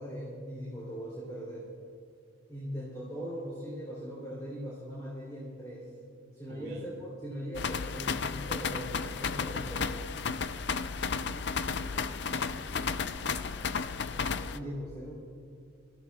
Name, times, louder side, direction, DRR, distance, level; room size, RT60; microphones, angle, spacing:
voice 1, 0.0-1.7 2.5-5.9 6.3-10.0 14.0-15.1, equal, 15° left, -7 dB, 3.2 m, -40 dB
voice 2, 6.5-6.9 11.0-13.5, right 1 dB, 90° right, 0 dB, 2.0 m, -50 dB
sound 1, 7.5-14.6, left 5 dB, 55° left, 0.5 m, -33 dB
28.0 x 14.0 x 2.4 m, 2.4 s
head